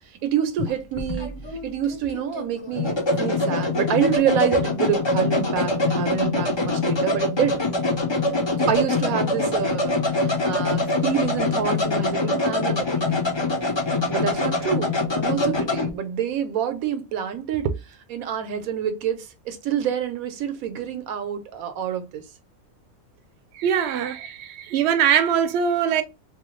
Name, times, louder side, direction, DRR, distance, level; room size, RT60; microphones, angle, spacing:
voice 1, 0.2-1.4 1.6-7.6 8.7-13.2 14.1-17.7 18.1-22.2, right 9 dB, 85° right, 1.1 m, -27 dB
sound 1, 0.6-15.9, left 2 dB, 35° left, 0.4 m, -24 dB
voice 2, 23.5-26.0, right 8 dB, 60° right, 0.7 m, -22 dB
3.1 x 2.2 x 3.0 m
omnidirectional pair, 1.5 m